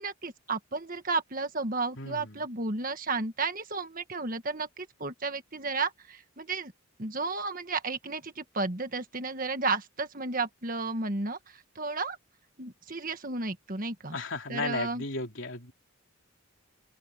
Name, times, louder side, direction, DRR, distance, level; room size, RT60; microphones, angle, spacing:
voice 1, 0.0-6.7 7.0-12.2 12.6-14.2 14.5-15.0, right 3 dB, 40° right, 1.6 m, -33 dB
voice 2, 2.0-2.4 14.1-15.7, left 3 dB, 60° left, 3.4 m, -34 dB
open air
head